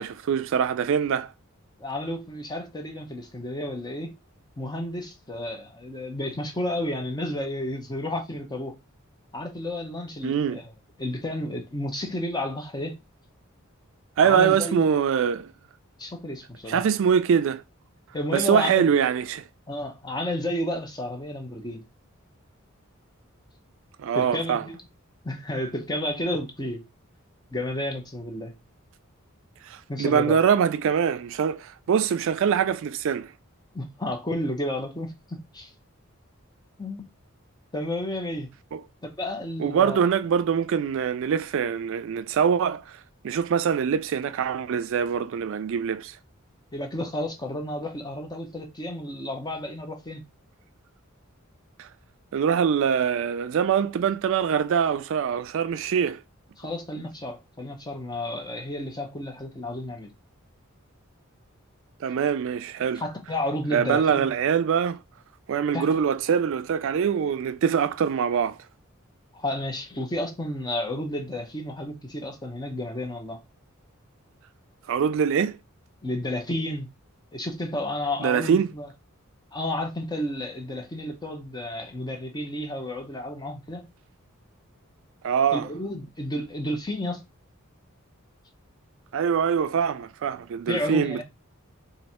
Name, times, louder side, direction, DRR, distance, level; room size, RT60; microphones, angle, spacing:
voice 1, 0.0-1.3 10.2-10.6 14.2-15.5 16.7-17.6 18.3-19.4 24.0-24.6 29.6-33.3 38.7-38.8 39.6-43.0 43.2-46.2 51.8-51.9 52.3-56.2 62.0-63.0 63.7-65.0 65.5-68.6 74.9-75.6 78.2-78.7 85.2-85.7 89.1-91.2, right 7 dB, 65° right, 0.3 m, -23 dB
voice 2, 1.8-4.2 4.6-8.8 9.3-10.7 11.0-13.0 14.2-14.9 16.0-16.8 18.1-18.9 19.7-21.8 24.1-24.8 25.2-26.8 27.5-28.5 29.9-30.4 33.7-35.7 36.8-37.0 37.7-38.5 39.0-40.0 46.7-50.2 56.6-60.1 63.0-64.3 65.7-66.0 69.3-73.4 76.0-76.9 77.3-78.9 79.5-83.9 85.5-87.2 90.7-91.2, left 1 dB, 20° left, 0.8 m, -31 dB
3.1 x 2.5 x 4.2 m
head